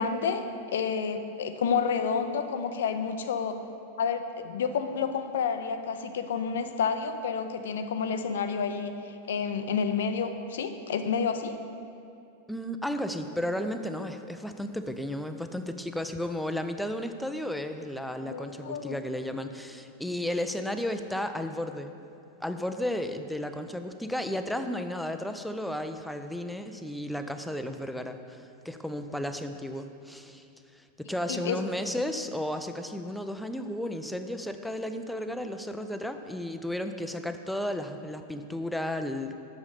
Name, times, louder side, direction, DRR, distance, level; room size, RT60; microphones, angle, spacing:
voice 1, 0.0-3.6 4.0-11.6 18.2-19.0 31.3-31.6, left 6 dB, 60° left, 9 dB, 0.5 m, -30 dB
voice 2, 12.5-21.9 22.4-39.3, left 1 dB, ahead, 7 dB, 0.4 m, -33 dB
6.9 x 5.7 x 6.6 m, 2.6 s
figure-of-eight pair, 90°, 0 cm